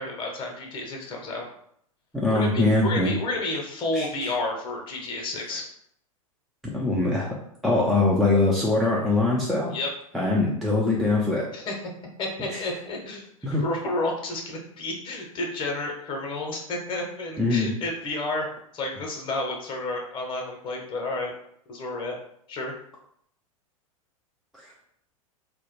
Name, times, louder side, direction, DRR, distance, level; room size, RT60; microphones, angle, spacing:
voice 1, 0.0-1.5 2.3-5.7 9.7-9.9 11.5-11.8 12.2-21.3 21.7-22.2 22.5-22.7, left 2 dB, 25° left, 1 dB, 0.7 m, -31 dB
voice 2, 2.2-3.1 3.9-4.3 5.5-5.6 6.7-7.3 7.6-9.7 10.1-11.5 12.5-12.6 13.4-13.6 17.4-17.7 24.6-24.7, left 2 dB, ahead, -5 dB, 0.4 m, -23 dB
2.1 x 2.1 x 2.9 m, 0.69 s
hypercardioid pair, 100°, 18 cm